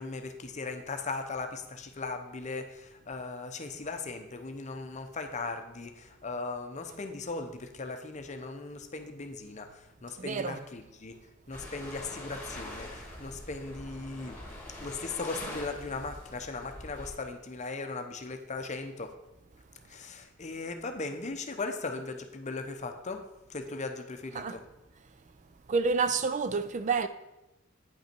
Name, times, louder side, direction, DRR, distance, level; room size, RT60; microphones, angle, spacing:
voice 1, 0.0-11.1 11.5-14.4 14.8-19.1 19.9-23.2 23.5-24.6, left 3 dB, 35° left, 0.7 m, -38 dB
voice 2, 10.2-10.6 24.3-24.6 25.7-27.1, right 4 dB, 35° right, 0.4 m, -28 dB
sound 1, 11.5-17.1, left 1 dB, 10° left, 2.1 m, -44 dB
9.2 x 5.5 x 4.4 m
head